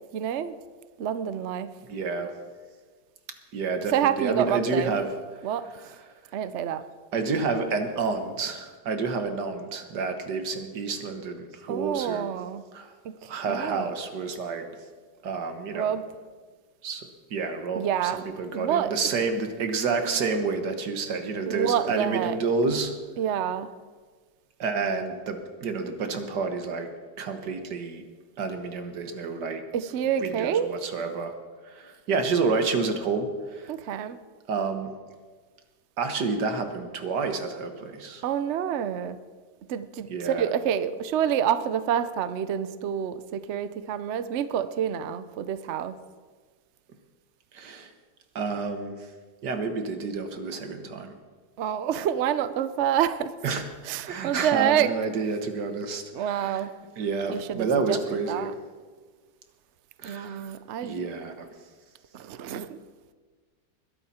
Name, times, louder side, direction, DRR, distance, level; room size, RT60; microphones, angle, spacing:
voice 1, 0.1-0.5 1.0-1.7 3.9-4.9 5.4-5.6 6.3-6.8 11.7-12.6 13.0-13.9 15.7-16.0 17.8-18.2 18.5-19.1 21.5-22.4 23.2-23.7 29.7-30.7 33.7-34.2 38.2-39.2 39.7-46.0 51.6-53.3 53.8-54.9 56.1-56.8 57.3-58.0 58.3-58.5 60.0-61.0 62.1-62.8, right 9 dB, 80° right, 13 dB, 0.6 m, -27 dB
voice 2, 1.9-2.3 3.5-5.1 7.1-12.3 12.7-12.9 13.3-14.7 15.2-15.9 16.8-22.9 24.6-26.9 27.2-28.0 28.4-29.6 30.2-31.4 31.7-33.7 34.5-34.9 36.0-38.2 40.1-40.5 47.5-47.9 48.4-49.0 49.4-51.1 53.4-53.6 54.1-56.6 57.0-58.5 60.0-60.4 60.8-61.5, right 4 dB, 60° right, 7 dB, 1.8 m, -29 dB
21.5 x 11.5 x 4.3 m, 1.5 s
omnidirectional pair, 2.1 m